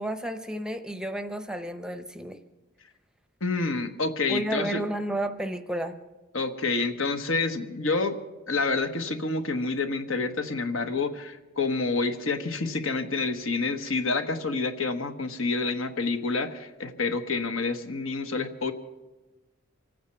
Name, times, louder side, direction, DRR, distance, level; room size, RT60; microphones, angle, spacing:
voice 1, 0.0-2.4 4.3-5.9, right 1 dB, 5° right, 8 dB, 0.7 m, -32 dB
voice 2, 3.4-4.8 6.3-8.2 8.5-18.7, left 3 dB, 75° left, 7 dB, 1.3 m, -28 dB
26.5 x 9.3 x 5.8 m, 1.2 s
head